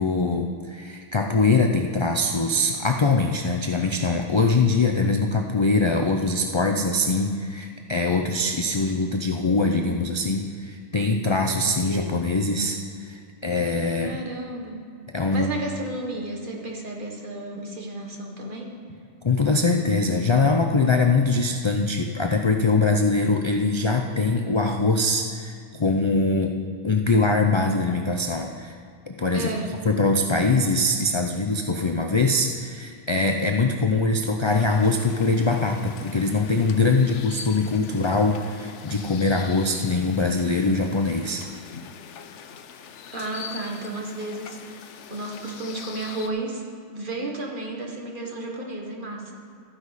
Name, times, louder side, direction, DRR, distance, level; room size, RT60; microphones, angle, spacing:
voice 1, 0.0-14.2 15.1-15.5 19.2-26.5 26.8-28.8 29.1-29.5 29.8-41.5, left 3 dB, 45° left, 3 dB, 0.3 m, -23 dB
voice 2, 14.0-14.8 15.3-18.7 29.3-29.8 43.1-46.6 46.9-49.4, right 2 dB, 45° right, 0 dB, 1.6 m, -33 dB
sound 1, 34.4-46.3, left 7 dB, 75° left, 1.0 m, -42 dB
13.0 x 9.8 x 4.1 m, 2.2 s
omnidirectional pair, 1.2 m